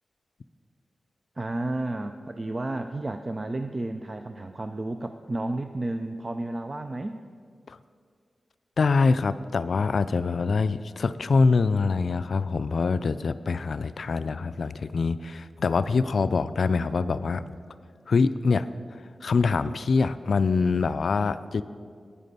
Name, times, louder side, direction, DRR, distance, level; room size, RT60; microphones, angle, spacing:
voice 1, 1.4-7.2, right 2 dB, 30° right, 8 dB, 0.4 m, -32 dB
voice 2, 8.8-17.6 18.1-18.7 19.2-21.6, left 4 dB, 65° left, 13 dB, 0.3 m, -24 dB
9.8 x 9.2 x 6.8 m, 2.1 s
wide cardioid pair, 125°, 0 cm